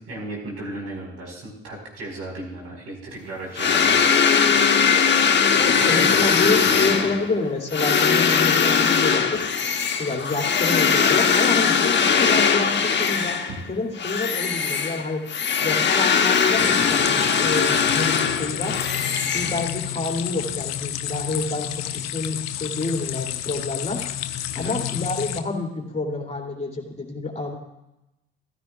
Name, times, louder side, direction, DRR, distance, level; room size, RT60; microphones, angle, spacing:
voice 1, 0.0-4.4 5.5-7.1 24.5-24.8, right 1 dB, 55° right, -1 dB, 4.9 m, -34 dB
sound 1, 3.6-13.6 14.0-20.0, left 6 dB, 40° left, 1.5 m, -20 dB
voice 2, 5.6-9.4 10.0-13.4 13.7-15.2 15.6-18.8 19.3-24.0 24.5-27.5, left 3 dB, 20° left, 0 dB, 3.0 m, -28 dB
sound 2, 16.6-25.4, left 12 dB, 65° left, 0.8 m, -30 dB
15.0 x 14.5 x 2.5 m, 0.91 s
hypercardioid pair, 50°, 29 cm